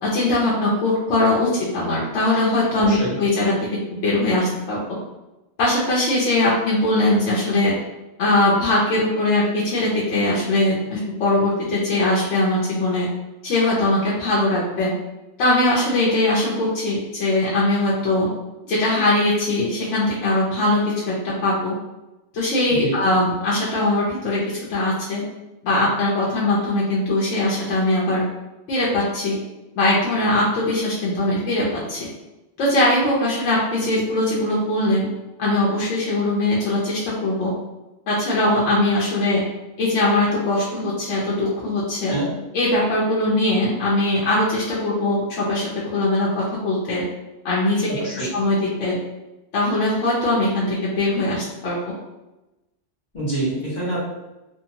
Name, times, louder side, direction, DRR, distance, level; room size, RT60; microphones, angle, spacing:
voice 1, 0.0-3.5 4.0-4.8 5.6-7.7 8.2-13.1 13.4-14.9 15.4-18.3 18.6-20.8 21.1-21.8 22.3-25.2 25.6-28.2 28.7-29.4 29.8-31.6 31.9-32.0 32.6-35.0 35.4-37.5 38.1-39.4 39.8-42.1 42.5-47.0 47.4-47.9 48.1-49.0 49.5-51.9, left 2 dB, 90° left, -5 dB, 0.9 m, -21 dB
voice 2, 2.8-3.1 22.7-22.9 42.1-42.3 47.9-48.3 53.1-54.0, right 2 dB, 45° left, -9 dB, 1.1 m, -26 dB
2.7 x 2.2 x 2.7 m, 1.0 s
omnidirectional pair, 1.2 m